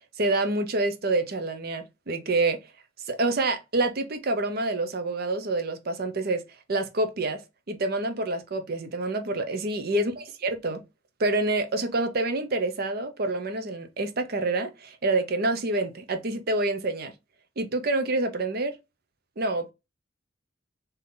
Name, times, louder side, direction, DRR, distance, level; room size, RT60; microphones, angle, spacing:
voice 1, 0.2-2.6 3.1-6.4 6.7-7.4 7.7-10.8 11.2-17.1 17.6-18.7 19.4-19.7, right 2 dB, 50° right, 0.7 m, -27 dB
3.9 x 2.8 x 3.7 m
head